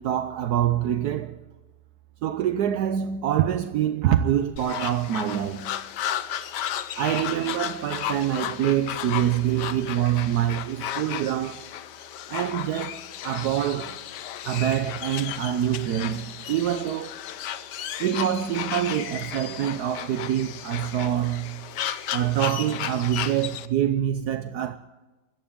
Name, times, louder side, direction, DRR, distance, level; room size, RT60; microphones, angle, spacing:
voice 1, 0.0-1.4 2.2-5.8 6.9-11.7 12.3-14.0 14.4-17.2 18.0-21.6 22.1-24.8, right 11 dB, 70° right, 1.2 m, -25 dB
sound 1, 4.6-23.7, left 10 dB, 80° left, 1.4 m, -34 dB
25.0 x 14.0 x 3.7 m
omnidirectional pair, 1.9 m